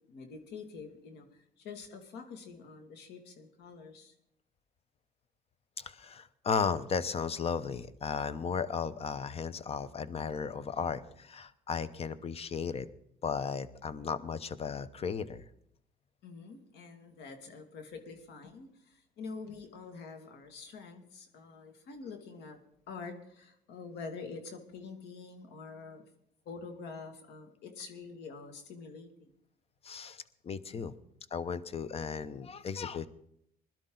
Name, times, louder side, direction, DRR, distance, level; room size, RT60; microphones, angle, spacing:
voice 1, 0.0-4.1 16.2-22.6 22.9-26.0 26.5-29.3 30.7-30.9, left 4 dB, 80° left, 6 dB, 2.3 m, -46 dB
voice 2, 5.8-12.9 13.2-15.4 29.8-30.9 31.3-33.1, left 6 dB, 35° left, 16 dB, 0.9 m, -35 dB
21.0 x 12.0 x 3.9 m, 0.73 s
cardioid pair, 110°, 17 cm